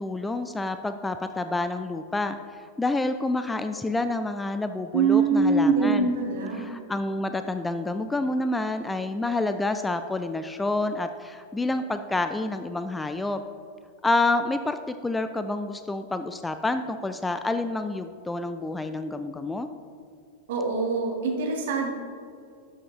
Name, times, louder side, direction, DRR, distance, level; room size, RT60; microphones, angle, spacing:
voice 1, 0.0-2.4 2.8-6.1 6.6-13.4 14.0-19.7, left 2 dB, 10° left, 9 dB, 0.3 m, -28 dB
voice 2, 4.9-6.7 20.5-21.9, right 4 dB, 55° right, 1 dB, 1.4 m, -23 dB
12.0 x 6.9 x 3.1 m, 2.3 s
figure-of-eight pair, 90°, 0 cm